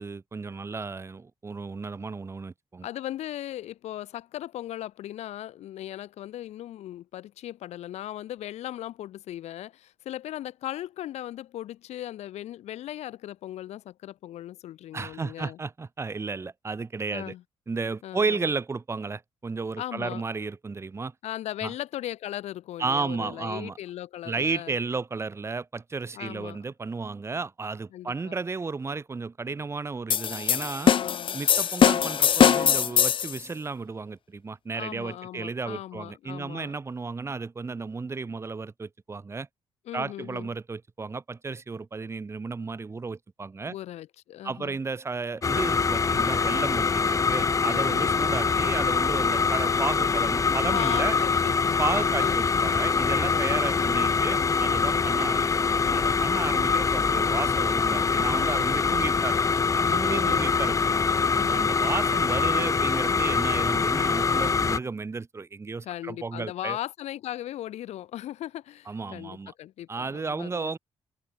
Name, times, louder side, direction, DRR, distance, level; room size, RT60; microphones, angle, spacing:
voice 1, 0.0-2.9 14.9-17.3 17.7-21.1 21.6-21.7 22.8-23.8 24.2-30.9 31.3-39.5 39.9-43.7 44.4-51.2 51.8-59.4 59.7-60.8 61.3-66.8 68.9-69.5 69.9-70.8, right 4 dB, 25° right, 6.4 m, -33 dB
voice 2, 2.8-15.6 17.1-17.4 18.0-18.4 19.8-20.2 21.2-24.7 26.1-26.6 27.9-28.3 30.9-31.4 34.7-36.8 39.9-40.5 43.7-44.8 47.7-48.4 50.7-52.6 60.0-60.5 61.3-61.6 65.8-70.8, left 13 dB, 85° left, 4.8 m, -38 dB
sound 1, 30.1-33.4, left 8 dB, 50° left, 1.8 m, -21 dB
sound 2, 45.4-64.8, left 5 dB, 30° left, 1.3 m, -24 dB
cardioid pair, 135°, 11 cm